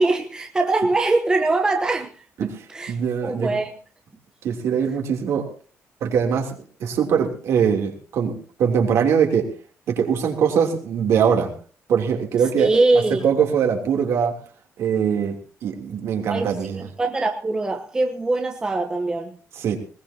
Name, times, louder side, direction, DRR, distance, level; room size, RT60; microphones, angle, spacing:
voice 1, 0.0-2.1 2.7-3.0 3.2-3.7 12.6-13.2 16.3-19.4, right 2 dB, 15° right, 1.0 m, -22 dB
voice 2, 2.4-3.6 4.4-5.5 6.0-9.5 9.9-11.5 11.9-14.3 14.8-15.3 15.6-16.9 19.5-19.8, right 7 dB, 65° right, 3.2 m, -22 dB
20.0 x 19.5 x 2.9 m
cardioid pair, 175°, 5 cm